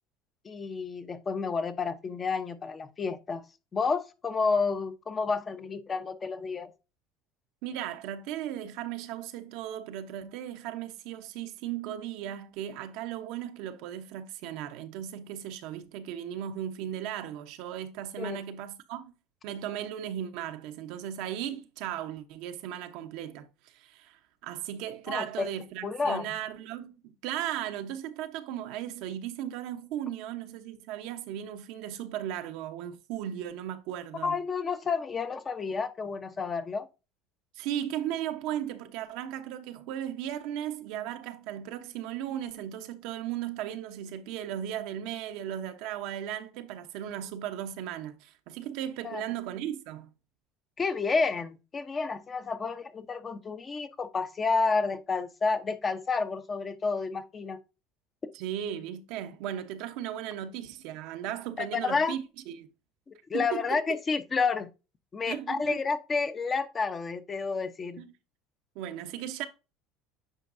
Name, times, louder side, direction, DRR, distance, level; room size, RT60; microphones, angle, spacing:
voice 1, 0.4-3.4 3.7-6.7 18.2-18.4 25.1-25.5 25.8-26.3 34.2-36.9 49.0-49.2 50.8-57.6 61.6-62.2 63.1-64.7 65.1-68.0, left 4 dB, 30° left, 0.9 m, -30 dB
voice 2, 7.6-19.1 19.4-34.4 37.5-50.1 58.3-62.7 63.3-63.8 65.3-65.8 68.0-68.1 68.7-69.5, right 11 dB, 70° right, 0.9 m, -36 dB
9.0 x 4.5 x 2.6 m
supercardioid pair, 100°, 0 cm